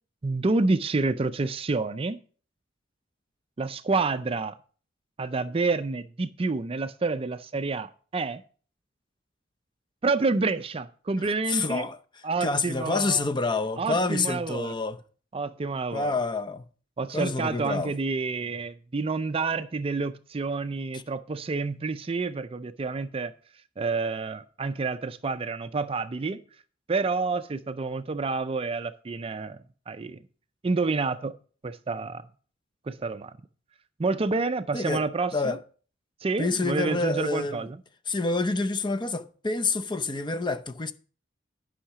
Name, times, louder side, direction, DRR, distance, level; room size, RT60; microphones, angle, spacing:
voice 1, 0.2-2.2 3.6-4.5 5.2-8.4 10.0-11.9 12.2-13.3 13.8-14.7 15.3-16.1 17.0-23.3 23.8-26.4 26.9-30.2 30.6-31.3 31.6-32.3 32.9-33.3 34.0-35.6 36.2-37.8, right 3 dB, 30° right, 0.4 m, -28 dB
voice 2, 11.5-12.0 12.4-15.0 15.9-16.6 17.1-17.9 20.9-21.0 34.7-35.0 35.3-35.6 36.4-37.7 38.1-40.9, left 3 dB, 25° left, 0.6 m, -27 dB
10.0 x 5.7 x 5.7 m
head